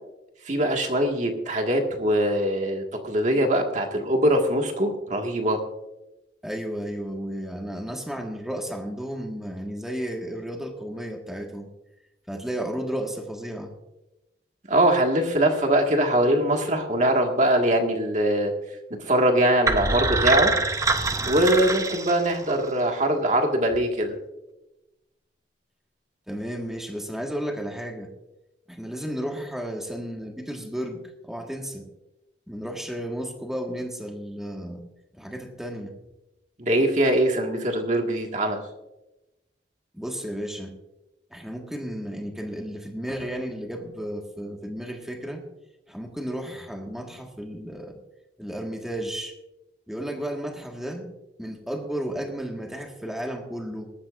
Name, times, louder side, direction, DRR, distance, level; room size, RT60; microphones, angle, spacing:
voice 1, 0.5-5.6 14.7-18.5 19.0-20.5 21.2-24.1 36.6-38.6, right 1 dB, 40° right, 3 dB, 1.8 m, -22 dB
voice 2, 6.4-11.7 12.3-13.7 26.3-28.1 28.7-31.9 32.5-34.8 35.1-36.0 39.9-40.7 41.3-45.4 45.9-48.0 48.4-49.3 49.9-51.1 51.4-53.9, equal, ahead, 2 dB, 1.6 m, -33 dB
sound 1, 19.7-22.7, right 3 dB, 15° right, 0.6 m, -25 dB
19.5 x 13.5 x 2.6 m, 0.96 s
head